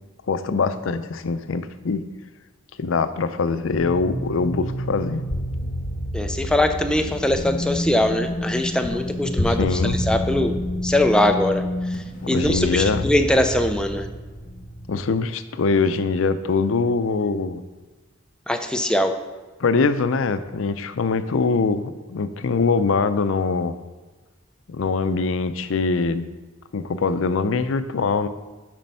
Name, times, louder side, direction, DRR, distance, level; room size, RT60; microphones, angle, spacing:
voice 1, 0.3-2.0 2.8-5.2 9.5-10.0 12.2-13.1 14.9-17.6 19.6-23.7 24.7-26.3 26.7-28.3, left 4 dB, 85° left, 12 dB, 0.5 m, -23 dB
sound 1, 3.7-15.0, left 1 dB, 45° left, 1.5 m, -28 dB
voice 2, 6.1-10.5 10.8-11.6 12.3-14.1 18.5-19.1, left 1 dB, 5° left, 6 dB, 0.5 m, -21 dB
7.4 x 5.3 x 5.5 m, 1.2 s
head